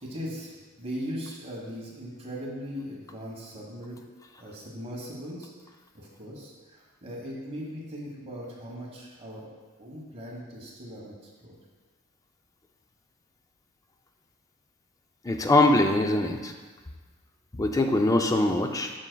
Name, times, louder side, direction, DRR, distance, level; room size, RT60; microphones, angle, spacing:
voice 1, 0.0-4.0 4.4-5.5 5.9-11.1 11.4-11.6, equal, 30° right, -4 dB, 1.3 m, -39 dB
voice 2, 15.2-16.5 17.5-18.9, left 2 dB, 15° left, 4 dB, 0.4 m, -22 dB
7.2 x 6.6 x 2.3 m, 1.4 s
head